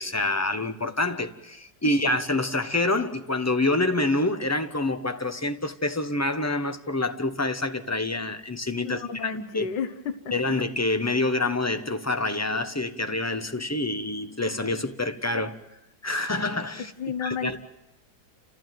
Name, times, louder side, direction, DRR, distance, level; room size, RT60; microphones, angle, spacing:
voice 1, 0.0-9.3 9.5-9.7 10.3-15.6 16.0-16.9 17.2-17.6, left 2 dB, 10° left, 0.8 m, -27 dB
voice 2, 8.8-10.3 16.8-17.6, left 6 dB, 75° left, 1.8 m, -32 dB
29.5 x 15.0 x 9.3 m
omnidirectional pair, 1.9 m